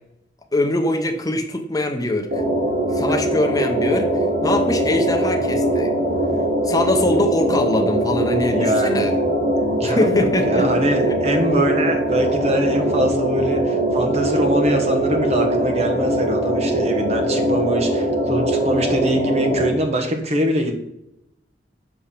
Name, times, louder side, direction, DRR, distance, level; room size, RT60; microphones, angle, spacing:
voice 1, 0.5-2.3 2.9-4.1 4.4-5.9 6.6-9.1 9.8-10.7, left 1 dB, 20° left, 5 dB, 0.8 m, -22 dB
sound 1, 2.3-19.7, right 1 dB, 60° right, 1.2 m, -21 dB
voice 2, 8.5-9.2 9.6-20.7, equal, 40° right, 4 dB, 1.1 m, -23 dB
7.0 x 3.4 x 5.7 m, 0.82 s
head